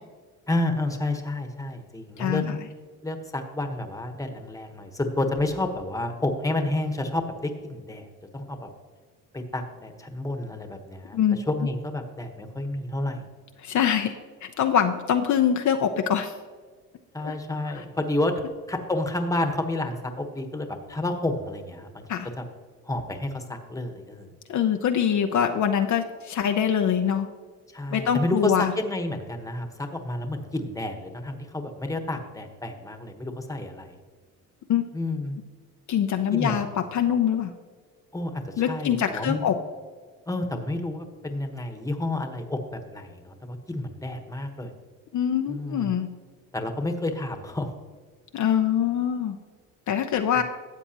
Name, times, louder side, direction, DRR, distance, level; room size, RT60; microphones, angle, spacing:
voice 1, 0.5-2.6 3.0-8.1 8.3-8.7 9.3-13.2 17.1-18.3 18.7-22.0 22.4-22.5 22.8-24.3 27.7-34.0 34.9-35.4 36.3-36.6 38.1-39.4 40.3-44.7 45.5-45.9 46.5-47.7, left 2 dB, 10° left, 5 dB, 1.2 m, -30 dB
voice 2, 2.2-2.6 11.1-11.4 13.6-16.3 17.2-17.3 17.7-17.8 22.1-22.3 24.5-27.3 27.9-28.7 34.7-34.8 35.9-36.7 36.9-37.5 38.6-39.6 45.1-46.1 48.3-49.4 49.9-50.4, left 9 dB, 50° left, 5 dB, 0.7 m, -24 dB
13.0 x 7.8 x 2.9 m, 1.5 s
supercardioid pair, 80°, 37 cm